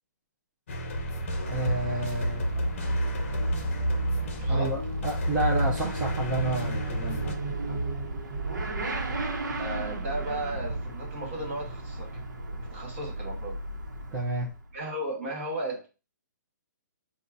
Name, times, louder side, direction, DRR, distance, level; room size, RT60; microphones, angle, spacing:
sound 1, 0.7-7.4, left 1 dB, 40° left, 0.7 m, -32 dB
Motorcycle / Accelerating revving vroom, 0.9-14.7, right 2 dB, 80° right, 1.0 m, -32 dB
voice 1, 1.5-2.5 4.5-7.3 14.1-14.5, right 2 dB, 10° right, -6 dB, 0.6 m, -30 dB
voice 2, 4.4-4.8 7.7-7.8 9.6-12.1 12.5-13.6 14.7-15.9, right 1 dB, 40° right, 0 dB, 1.9 m, -35 dB
5.4 x 2.4 x 3.9 m, 0.31 s
hypercardioid pair, 180°, 10 cm